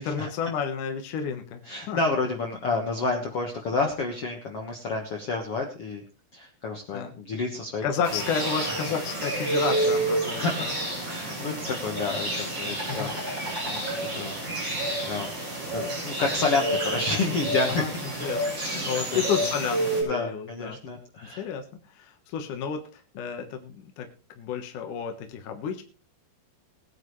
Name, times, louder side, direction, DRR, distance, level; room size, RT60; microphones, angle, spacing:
voice 1, 0.0-1.6 1.9-2.0 6.9-7.1 7.8-10.7 12.9-13.1 17.8-17.9 18.2-20.8 21.4-21.6 21.9-24.1 24.4-25.8, left 6 dB, 60° left, 5 dB, 2.3 m, -31 dB
voice 2, 1.6-6.0 6.3-7.8 8.1-8.2 10.4-10.6 11.1-13.2 13.7-14.3 14.6-15.3 15.7-18.0 18.6-19.2 20.0-21.4, left 3 dB, 80° left, 1 dB, 1.3 m, -30 dB
sound 1, 8.0-20.0, right 1 dB, 25° right, 7.1 m, -29 dB
21.0 x 9.7 x 3.2 m, 0.36 s
omnidirectional pair, 5.2 m